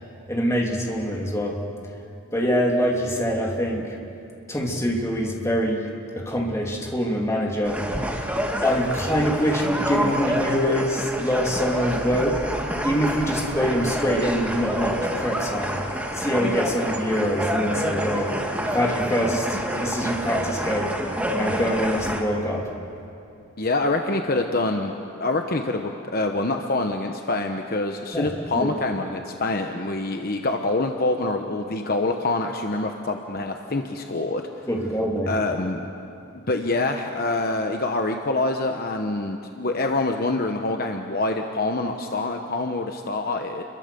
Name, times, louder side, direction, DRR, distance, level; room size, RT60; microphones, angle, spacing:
voice 1, 0.3-1.6 2.3-4.0 4.5-7.8 8.2-8.3 8.6-12.5 12.8-15.8 16.1-18.3 18.7-21.0 21.3-22.7 28.1-28.7 34.7-35.4, equal, 15° left, -1 dB, 2.7 m, -25 dB
sound 1, 7.6-22.2, equal, 5° right, 1.9 m, -27 dB
voice 2, 23.6-24.9 25.2-34.4 35.3-35.8 36.5-43.6, left 2 dB, 45° left, 4 dB, 1.0 m, -25 dB
30.0 x 23.0 x 6.9 m, 2.8 s
head